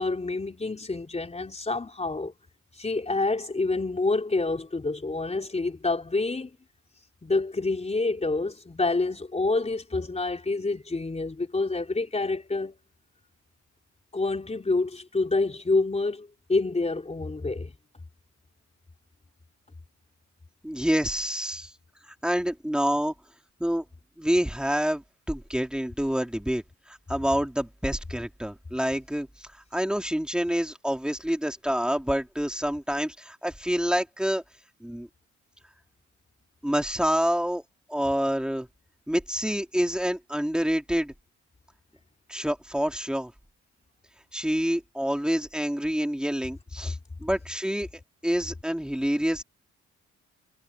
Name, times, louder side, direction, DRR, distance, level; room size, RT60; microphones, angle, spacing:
voice 1, 0.0-2.3 2.8-6.5 7.2-12.7 14.1-17.7, left 3 dB, 20° left, 4.0 m, -27 dB
voice 2, 20.6-21.7 22.0-23.1 23.6-23.8 24.2-34.4 34.8-35.1 36.6-37.6 37.9-38.7 39.1-41.1 42.3-43.3 44.3-47.9 48.2-49.4, equal, 5° right, 3.8 m, -27 dB
cardioid pair, 90°, 30 cm